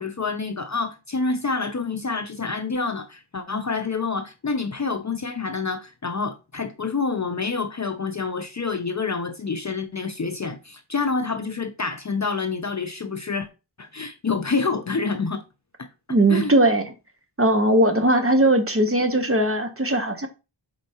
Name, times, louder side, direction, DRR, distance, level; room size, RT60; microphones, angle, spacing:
voice 1, 0.0-13.5 13.8-15.4 15.8-15.9 16.3-16.5, left 4 dB, 40° left, 0.5 m, -27 dB
voice 2, 16.1-16.8 17.4-20.3, right 1 dB, 30° right, 0.9 m, -19 dB
4.4 x 4.3 x 2.8 m
wide cardioid pair, 45°, 47 cm